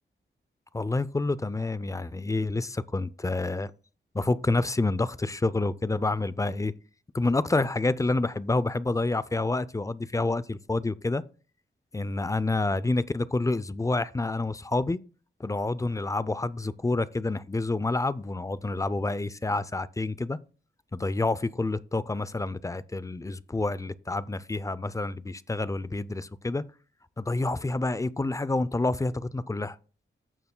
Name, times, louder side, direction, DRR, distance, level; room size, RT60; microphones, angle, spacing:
voice 1, 0.7-3.7 4.1-6.7 7.1-11.2 11.9-15.0 15.4-20.4 20.9-26.6 27.2-29.8, left 2 dB, 15° left, 0.4 m, -28 dB
15.0 x 6.7 x 2.2 m
wide cardioid pair, 140°, 20 cm